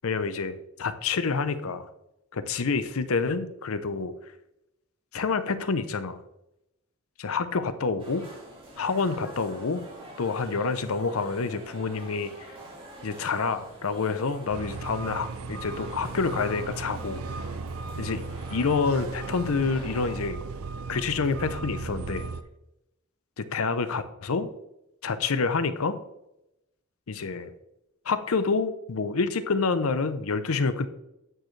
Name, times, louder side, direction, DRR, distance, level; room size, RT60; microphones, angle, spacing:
voice 1, 0.0-1.9 2.3-4.1 5.1-6.2 7.2-8.2 8.8-9.8 10.2-12.3 13.0-17.2 18.0-18.2 18.5-20.4 20.9-22.2 23.4-24.5 25.0-26.0 27.1-27.5 28.1-30.9, left 4 dB, 85° left, 12 dB, 0.7 m, -28 dB
sound 1, 8.0-20.3, right 1 dB, 25° right, 2.6 m, -46 dB
sound 2, 14.5-22.4, right 4 dB, 85° right, 0.5 m, -36 dB
8.8 x 6.3 x 3.2 m, 0.86 s
head